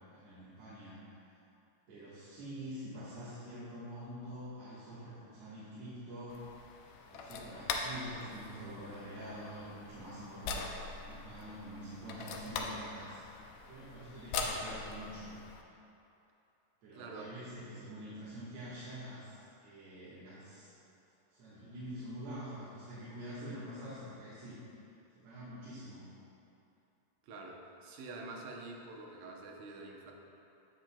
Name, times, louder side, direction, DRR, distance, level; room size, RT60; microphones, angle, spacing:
voice 1, 0.1-1.0 1.9-6.4 7.1-13.2 13.7-15.3 16.8-20.7 21.3-24.6 25.1-26.1, equal, 60° right, -12 dB, 2.2 m, -46 dB
sound 1, 6.3-15.6, left 4 dB, 85° left, 1.6 m, -42 dB
voice 2, 16.9-17.3 27.2-30.1, right 3 dB, 80° right, -1 dB, 2.3 m, -47 dB
8.4 x 7.7 x 2.2 m, 2.8 s
omnidirectional pair, 3.8 m